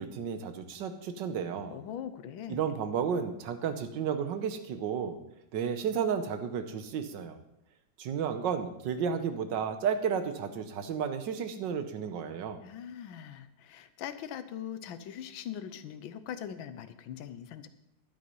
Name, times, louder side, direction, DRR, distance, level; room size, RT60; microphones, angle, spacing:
voice 1, 0.0-1.8 2.5-5.2 5.5-7.4 8.0-12.6, right 7 dB, 70° right, 9 dB, 1.6 m, -32 dB
voice 2, 1.7-2.6 12.6-17.7, left 9 dB, 85° left, 12 dB, 1.6 m, -41 dB
11.0 x 9.3 x 5.4 m, 0.83 s
omnidirectional pair, 2.1 m